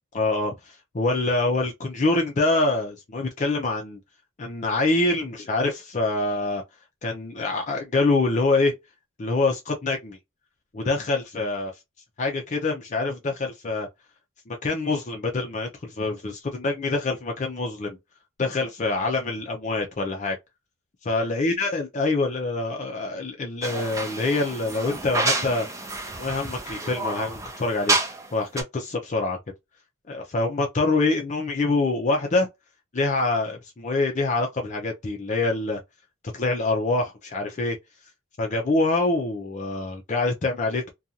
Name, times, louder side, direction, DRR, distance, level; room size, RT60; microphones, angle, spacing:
voice 1, 0.1-4.0 4.4-6.6 7.0-8.7 9.2-10.2 10.7-11.7 12.2-13.9 14.5-18.0 18.4-20.4 21.0-25.7 26.2-28.0 28.3-29.4 30.1-32.5 32.9-35.8 36.3-37.8 38.4-40.9, left 2 dB, 35° left, 0.5 m, -25 dB
sound 1, 23.6-28.3 28.6-28.7, right 2 dB, 15° right, 0.6 m, -29 dB
2.5 x 2.3 x 2.7 m
head